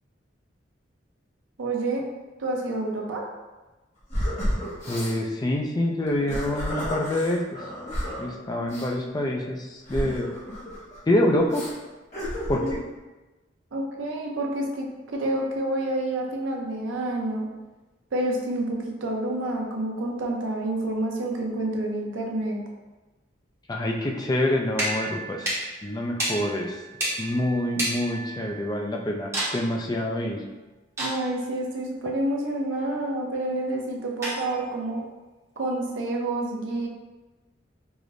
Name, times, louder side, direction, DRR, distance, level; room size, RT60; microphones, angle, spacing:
voice 1, 1.6-2.0 2.4-3.2 12.6-12.7 13.7-14.9 15.1-17.5 18.1-22.6 31.0-35.0 35.6-36.9, right 1 dB, 90° right, 0 dB, 0.6 m, -28 dB
sound 1, 4.1-5.2 6.1-8.2 8.7-8.9 9.9-11.0 11.5-11.7 12.1-12.8, equal, 35° left, 1.1 m, -31 dB
voice 2, 4.9-7.4 8.2-10.3 11.1-11.7 12.5-12.8 23.7-26.8 27.2-30.4, left 1 dB, 20° left, 1 dB, 0.3 m, -26 dB
sound 2, 24.7-28.8 29.3-29.7 31.0-31.5 34.2-34.8, right 1 dB, 15° right, 0.7 m, -31 dB
4.8 x 2.0 x 2.5 m, 1.1 s
head